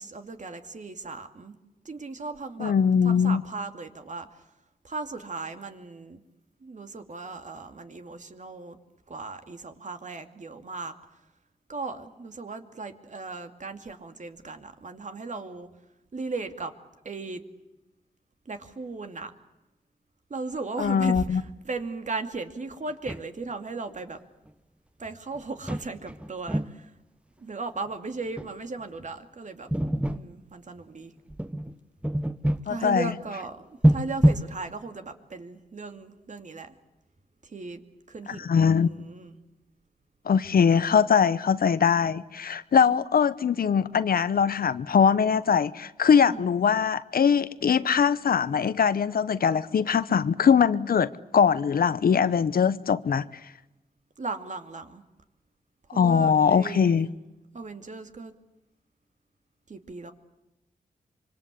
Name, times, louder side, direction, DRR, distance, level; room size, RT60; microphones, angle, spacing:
voice 1, 0.0-1.6 1.8-2.7 3.0-4.5 4.8-6.2 6.6-8.8 9.1-11.2 11.7-15.7 16.1-16.7 17.0-17.4 18.5-19.3 20.3-24.2 25.0-26.9 27.4-29.7 30.0-31.1 32.6-36.7 37.4-37.8 38.1-38.5 38.8-39.4 46.2-46.5 54.2-55.0 55.9-57.1 57.5-58.3 59.7-60.1, right 3 dB, 50° right, 2.5 m, -37 dB
voice 2, 2.6-3.4 20.8-21.4 32.7-33.1 38.4-38.9 40.2-53.2 55.9-57.1, left 7 dB, 70° left, 1.0 m, -22 dB
sound 1, 22.9-23.5 24.5-24.6 25.3-25.4 25.7-26.7 28.4-28.5 28.8-28.9 29.7-30.3 31.3-31.7 32.0-32.7 33.8-34.5, right 1 dB, 5° right, 1.1 m, -24 dB
25.5 x 25.0 x 8.4 m
cardioid pair, 70°, 16 cm